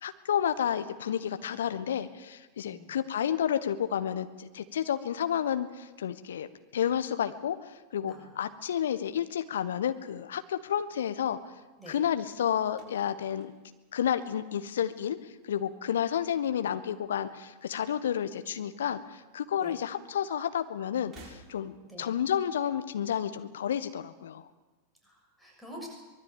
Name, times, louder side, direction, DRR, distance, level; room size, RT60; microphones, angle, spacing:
voice 1, 0.0-6.5 6.7-11.4 11.9-13.5 13.9-15.2 15.5-24.4, left 9 dB, 65° left, 10 dB, 1.4 m, -31 dB
voice 2, 2.6-3.0 8.1-8.3 11.8-12.0 19.5-19.7 21.9-22.1 25.0-25.9, equal, 5° left, -1 dB, 6.7 m, -47 dB
sound 1, 12.7-15.0 15.3-15.9 17.0-18.0 18.2-18.4 19.5-19.6 21.0-22.0, right 3 dB, 20° right, 6.2 m, -56 dB
24.0 x 21.0 x 7.3 m, 1.2 s
figure-of-eight pair, 90°, 0 cm